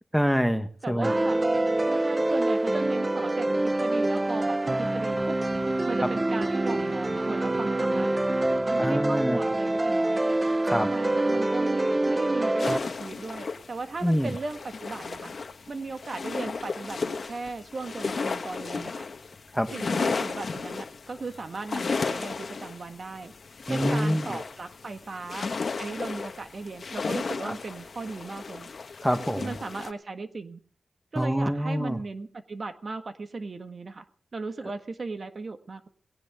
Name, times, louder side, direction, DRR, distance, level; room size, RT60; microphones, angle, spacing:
voice 1, 0.1-1.1 8.8-9.4 10.6-10.9 14.0-14.3 19.5-19.7 23.7-24.3 27.4-27.5 29.0-29.6 31.1-32.0, equal, ahead, 9 dB, 1.5 m, -26 dB
voice 2, 0.8-1.4 1.9-5.4 5.8-8.1 8.6-10.2 10.9-15.4 15.7-19.0 19.7-23.3 23.6-25.5 25.8-28.7 29.4-30.6 31.1-34.1 34.3-35.9, right 3 dB, 50° right, 8 dB, 1.7 m, -37 dB
sound 1, 1.0-12.8, right 2 dB, 25° right, 0.8 m, -25 dB
sound 2, 12.6-29.9, left 4 dB, 60° left, 1.4 m, -34 dB
19.5 x 17.5 x 3.7 m, 0.42 s
wide cardioid pair, 95°, 0 cm